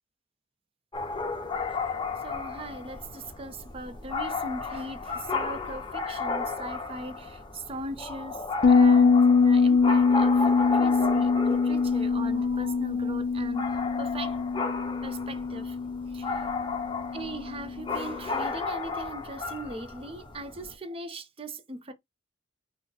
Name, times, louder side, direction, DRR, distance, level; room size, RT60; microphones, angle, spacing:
sound 1, 0.9-20.7, left 4 dB, 25° left, 0.8 m, -34 dB
voice 1, 2.2-8.4 8.7-14.4 15.0-15.8 16.1-16.3 17.1-21.9, right 2 dB, 30° right, 0.5 m, -39 dB
Bass guitar, 8.6-18.0, left 4 dB, 50° left, 0.5 m, -23 dB
6.1 x 2.0 x 2.9 m
head